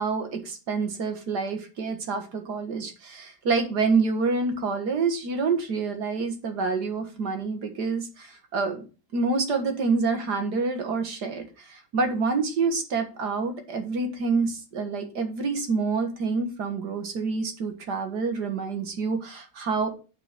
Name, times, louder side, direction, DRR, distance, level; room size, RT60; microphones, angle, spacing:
voice 1, 0.0-8.8 9.1-19.9, right 4 dB, 85° right, 6 dB, 2.2 m, -27 dB
8.6 x 4.7 x 6.6 m, 0.33 s
omnidirectional pair, 1.7 m